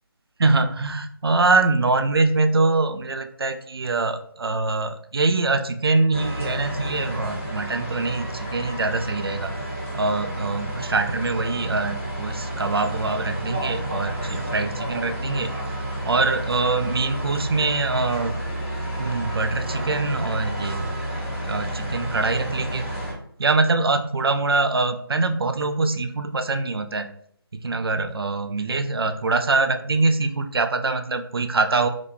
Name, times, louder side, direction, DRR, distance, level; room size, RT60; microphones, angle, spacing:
voice 1, 0.4-9.5 9.9-15.5 15.8-18.4 19.0-20.9 21.4-22.9 23.4-27.1 27.5-31.9, right 3 dB, 70° right, 8 dB, 0.4 m, -23 dB
sound 1, 6.1-23.1, right 1 dB, 30° right, 1.1 m, -30 dB
2.9 x 2.5 x 3.4 m, 0.64 s
figure-of-eight pair, 175°, 13 cm